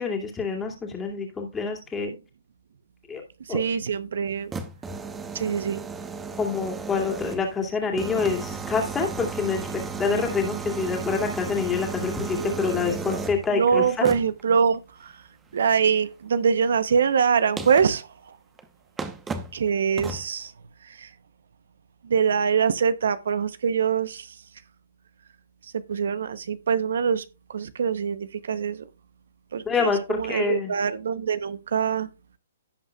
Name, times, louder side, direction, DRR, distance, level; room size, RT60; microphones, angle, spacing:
voice 1, 0.0-2.2 3.1-3.2 3.5-3.6 6.4-14.1 29.6-30.7, left 5 dB, 10° left, 2.4 m, -27 dB
voice 2, 3.4-4.5 5.3-5.8 12.3-12.6 13.5-15.2 15.5-18.4 19.5-20.5 20.8-21.1 22.0-24.4 25.9-27.2 27.5-28.8 29.5-32.1, right 6 dB, 70° right, 0.8 m, -24 dB
sound 1, 4.3-7.6 8.0-13.5 14.0-14.4 16.8-16.9 17.6-17.9 18.6-18.7 19.0-19.6 20.0-20.3, right 4 dB, 10° right, 0.9 m, -34 dB
16.5 x 5.6 x 2.3 m
hypercardioid pair, 145°, 0 cm